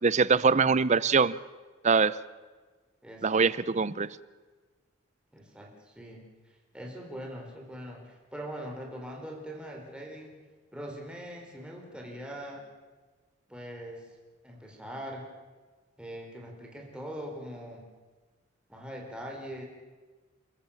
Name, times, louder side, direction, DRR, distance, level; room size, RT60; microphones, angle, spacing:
voice 1, 0.0-1.4 1.8-2.2 3.2-4.1, right 5 dB, 35° right, 18 dB, 0.6 m, -23 dB
voice 2, 3.0-3.4 5.3-6.2 6.7-10.4 10.7-12.6 13.5-14.1 14.4-15.3 16.0-17.9 18.7-19.6, equal, 5° right, 0 dB, 4.1 m, -42 dB
29.5 x 14.5 x 7.2 m, 1.4 s
head